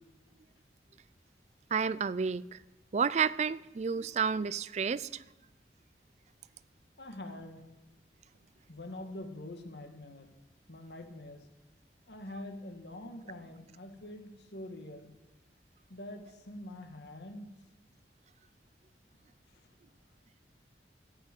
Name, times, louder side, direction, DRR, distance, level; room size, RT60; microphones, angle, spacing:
voice 1, 1.7-2.6 2.9-5.2, right 6 dB, 40° right, 0.4 m, -30 dB
voice 2, 7.0-7.7 8.7-10.4 10.7-11.5 12.1-15.1 15.9-17.7 19.5-19.7, left 1 dB, 70° left, 1.7 m, -45 dB
14.5 x 6.1 x 9.2 m
head